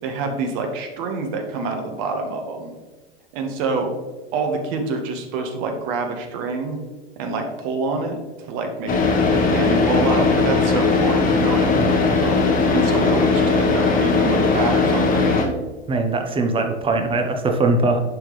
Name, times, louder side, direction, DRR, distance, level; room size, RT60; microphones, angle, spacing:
voice 1, 0.0-2.7 3.3-3.9 4.3-6.8 7.2-8.9 9.3-15.4, right 4 dB, 50° right, 4 dB, 1.4 m, -26 dB
Car / Idling, 8.9-15.5, left 4 dB, 25° left, 1.3 m, -18 dB
voice 2, 15.9-18.0, right 2 dB, 15° right, 5 dB, 0.8 m, -21 dB
10.5 x 3.8 x 3.2 m, 1.3 s
hypercardioid pair, 110°, 34 cm